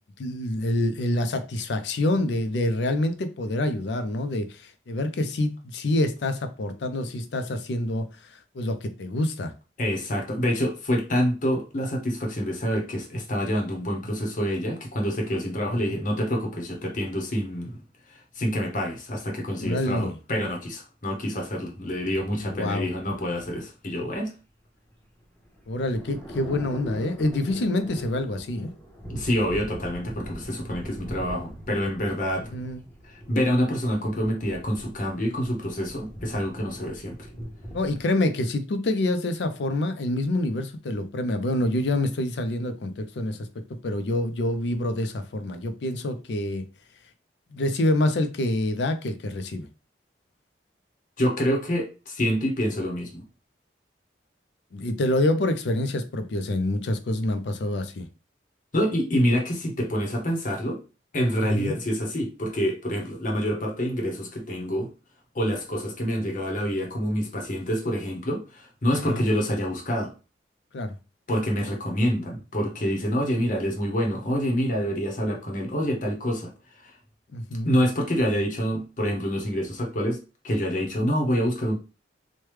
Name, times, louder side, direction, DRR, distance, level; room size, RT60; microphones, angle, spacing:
voice 1, 0.2-8.0 8.3-9.5 15.7-15.8 19.6-20.2 22.4-22.9 25.7-28.7 32.5-32.8 37.7-43.4 43.8-46.6 47.5-49.7 54.7-58.1 61.4-61.7 69.0-69.2 70.7-70.9 77.3-77.7, left 1 dB, 75° left, 0.5 m, -26 dB
voice 2, 9.8-17.8 18.1-24.3 29.1-32.5 33.0-37.2 51.2-53.2 58.7-60.8 61.1-64.9 65.3-70.1 71.3-76.5 76.8-76.9 77.6-80.2 80.4-81.8, equal, 45° left, 0.8 m, -27 dB
sound 1, 24.9-38.0, equal, 10° left, 0.8 m, -41 dB
3.1 x 2.2 x 3.1 m
head